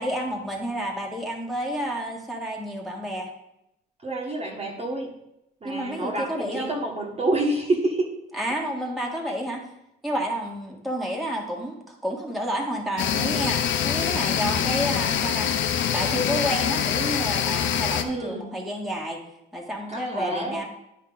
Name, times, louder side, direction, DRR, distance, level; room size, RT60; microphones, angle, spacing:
voice 1, 0.0-3.3 5.6-6.7 8.4-9.6 10.0-15.5 15.9-19.2 19.5-20.7, equal, ahead, -1 dB, 1.5 m, -30 dB
voice 2, 4.0-5.1 5.6-8.1 17.9-18.5 19.9-20.6, right 2 dB, 30° right, 0 dB, 1.4 m, -28 dB
sound 1, 13.0-18.0, left 9 dB, 70° left, 0.6 m, -25 dB
10.0 x 4.7 x 3.9 m, 0.84 s
cardioid pair, 90°, 20 cm